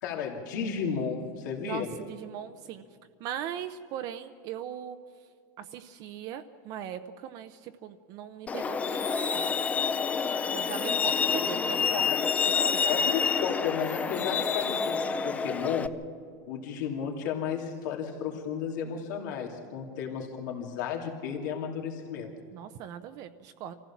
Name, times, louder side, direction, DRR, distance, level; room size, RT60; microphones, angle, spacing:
voice 1, 0.0-1.9 11.9-12.0 12.9-15.9 16.5-22.3, left 7 dB, 75° left, 0 dB, 2.9 m, -33 dB
voice 2, 1.6-2.8 3.2-5.0 5.6-9.5 10.5-11.9 12.2-12.3 12.6-12.8 22.5-23.7, right 9 dB, 40° right, 8 dB, 0.7 m, -39 dB
Truck, 8.5-15.9, left 5 dB, 15° left, 0.5 m, -28 dB
26.0 x 15.5 x 7.2 m, 2.3 s
supercardioid pair, 165°, 10 cm